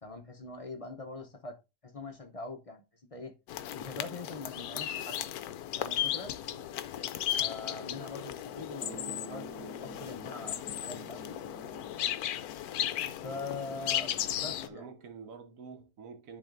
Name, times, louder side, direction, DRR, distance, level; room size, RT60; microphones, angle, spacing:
voice 1, 0.0-1.6 1.8-3.3 3.7-5.3 5.8-6.3 7.4-11.2 13.2-14.9, left 3 dB, 40° left, 0.5 m, -43 dB
sound 1, 3.5-14.7, left 11 dB, 70° left, 1.0 m, -35 dB
sound 2, 8.8-12.0, right 6 dB, 80° right, 1.3 m, -49 dB
voice 2, 13.5-16.4, right 5 dB, 60° right, 1.1 m, -50 dB
10.5 x 4.3 x 2.6 m
omnidirectional pair, 1.8 m